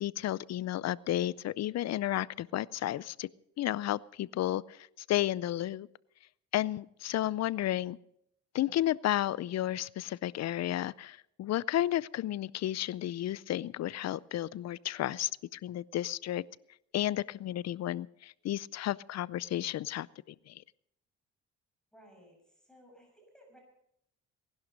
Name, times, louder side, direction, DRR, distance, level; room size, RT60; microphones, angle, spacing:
voice 1, 0.0-3.3 3.6-4.8 5.1-5.9 6.5-8.0 8.5-16.4 16.9-20.1 20.5-20.6, left 13 dB, 60° left, 21 dB, 0.5 m, -32 dB
voice 2, 21.9-23.6, equal, ahead, 1 dB, 6.4 m, -58 dB
19.0 x 11.5 x 5.2 m, 0.76 s
cardioid pair, 90°, 30 cm